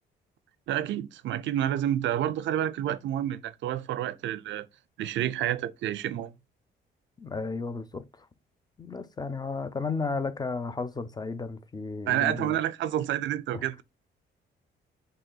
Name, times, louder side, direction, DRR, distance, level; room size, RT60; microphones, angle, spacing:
voice 1, 0.7-4.7 5.0-6.3 12.1-13.8, right 11 dB, 70° right, 0.4 m, -29 dB
voice 2, 7.2-8.3 8.8-12.6 13.5-13.6, left 4 dB, 20° left, 0.5 m, -33 dB
5.4 x 3.0 x 2.2 m
cardioid pair, 90°, 20 cm